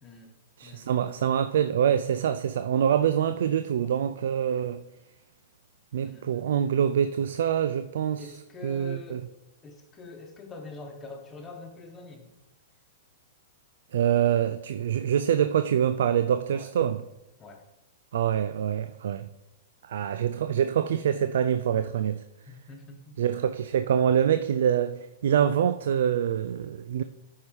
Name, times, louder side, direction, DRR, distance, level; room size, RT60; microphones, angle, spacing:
voice 1, 0.0-1.4 3.4-3.6 3.8-4.0 6.0-6.5 8.2-9.3 9.6-12.3 16.5-16.7 17.4-17.6 22.5-23.2, left 2 dB, 20° left, 1.6 m, -45 dB
voice 2, 0.6-4.8 5.9-8.3 8.6-9.2 13.9-17.0 18.1-19.3 19.8-22.2 23.2-27.0, right 9 dB, 65° right, 0.3 m, -25 dB
13.5 x 5.6 x 3.2 m
figure-of-eight pair, 105°, 0 cm